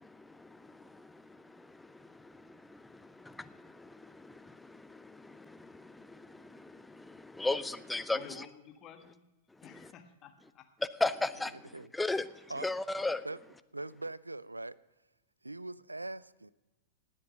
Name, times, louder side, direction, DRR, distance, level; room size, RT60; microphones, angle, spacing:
voice 1, 0.0-8.5 9.5-9.9 10.8-13.3, left 2 dB, 5° left, 0.5 m, -38 dB
voice 2, 8.1-9.2 9.6-10.6, left 7 dB, 30° left, 1.6 m, -51 dB
voice 3, 13.7-14.8 15.4-16.5, right 2 dB, 90° right, 0.4 m, -41 dB
18.5 x 7.6 x 6.3 m
figure-of-eight pair, 100°, 0 cm